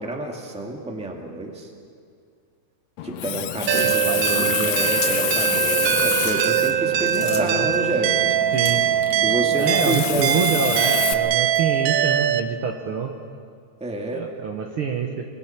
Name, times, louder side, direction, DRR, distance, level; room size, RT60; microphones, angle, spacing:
voice 1, 0.0-1.7 3.0-8.4 9.2-10.3 13.8-14.2, right 2 dB, 5° right, 1 dB, 1.7 m, -29 dB
Water tap faucet, 3.0-11.1, left 12 dB, 80° left, 2.1 m, -28 dB
sound 1, 3.7-5.4 5.9-7.8 8.5-9.0 9.5-10.9 11.5-11.6, left 5 dB, 65° left, 3.4 m, -39 dB
voice 2, 3.7-4.7 7.2-7.7 8.5-8.8 9.6-13.1 14.1-15.3, right 6 dB, 60° right, 3 dB, 1.7 m, -26 dB
sound 2, 3.7-12.4, right 10 dB, 75° right, 1.4 m, -22 dB
25.0 x 23.5 x 5.8 m, 2.2 s
omnidirectional pair, 3.3 m